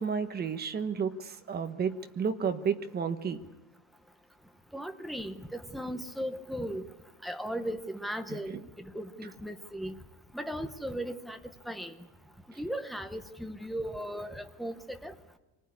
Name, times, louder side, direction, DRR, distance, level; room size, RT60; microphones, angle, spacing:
voice 1, 0.0-3.4 8.3-8.6, right 6 dB, 20° right, 8 dB, 1.2 m, -32 dB
voice 2, 4.7-6.8 7.2-8.6 8.9-10.0 10.3-11.4 11.7-12.0 12.6-15.1, equal, ahead, 7 dB, 0.8 m, -37 dB
26.0 x 20.0 x 9.6 m, 1.1 s
cardioid pair, 175°, 47 cm